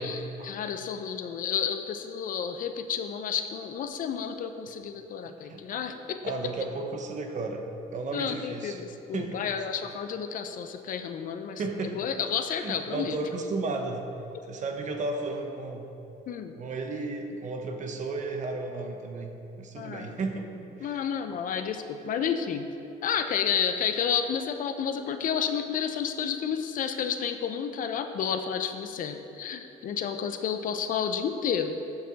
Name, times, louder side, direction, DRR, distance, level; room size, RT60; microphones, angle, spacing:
voice 1, 0.0-6.2 8.1-13.2 16.3-16.5 19.8-20.2 20.8-22.7 23.0-31.8, left 7 dB, 55° left, 8 dB, 0.5 m, -31 dB
voice 2, 5.3-5.6 6.2-7.7 7.9-8.8 9.1-9.4 11.6-12.1 12.6-14.0 14.5-15.9 16.6-20.5 20.8-21.0, right 3 dB, 45° right, 3 dB, 1.0 m, -34 dB
14.0 x 4.8 x 4.0 m, 2.9 s
cardioid pair, 110°, 17 cm